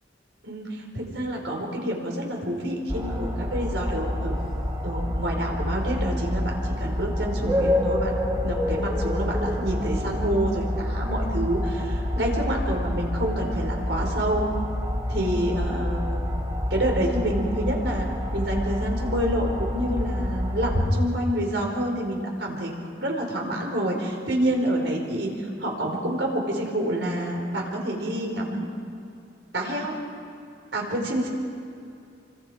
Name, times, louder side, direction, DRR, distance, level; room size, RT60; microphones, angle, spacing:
voice 1, 0.4-4.4 4.8-14.5 15.1-16.2 16.7-18.0 18.3-25.3 25.6-28.7 29.5-29.9 30.7-31.3, right 1 dB, 85° right, 0 dB, 5.0 m, -28 dB
sound 1, 2.9-20.9, left 1 dB, 25° right, 2.3 m, -27 dB
27.0 x 25.0 x 5.2 m, 2.6 s
head